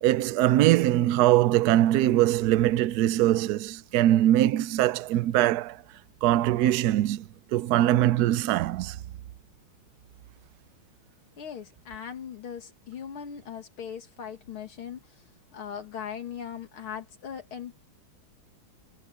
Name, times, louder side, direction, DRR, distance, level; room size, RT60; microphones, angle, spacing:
voice 1, 0.0-5.8 6.2-9.0, right 13 dB, 80° right, 0.8 m, -22 dB
voice 2, 11.4-17.8, left 8 dB, 75° left, 2.8 m, -39 dB
omnidirectional pair, 2.3 m